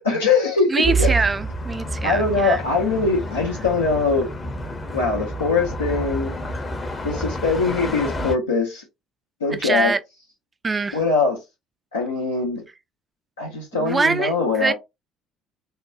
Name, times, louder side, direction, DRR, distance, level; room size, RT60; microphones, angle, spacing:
voice 1, 0.0-1.1 2.0-4.3 4.9-6.4 7.0-8.8 9.4-9.9 10.9-11.4 11.9-12.6 13.4-14.7, left 4 dB, 80° left, 0.6 m, -22 dB
voice 2, 0.7-2.6 9.6-10.0 10.6-11.0 13.7-14.7, right 3 dB, 25° right, 0.4 m, -23 dB
sound 1, 0.8-8.4, right 2 dB, 25° left, 0.7 m, -28 dB
3.4 x 2.2 x 2.6 m
figure-of-eight pair, 55°, 0 cm